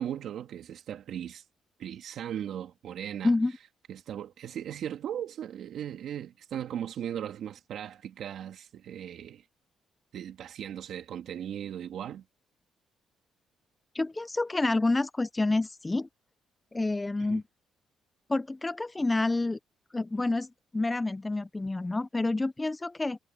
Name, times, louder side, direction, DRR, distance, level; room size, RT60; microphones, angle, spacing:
voice 1, 0.0-1.4 1.8-3.3 3.9-9.4 10.1-12.2 17.2-17.4, right 10 dB, 70° right, 2.4 m, -37 dB
voice 2, 13.9-16.1 16.7-17.4 18.3-19.6 19.9-20.5 20.7-23.2, left 2 dB, 15° left, 0.5 m, -28 dB
cardioid pair, 90°, 0 cm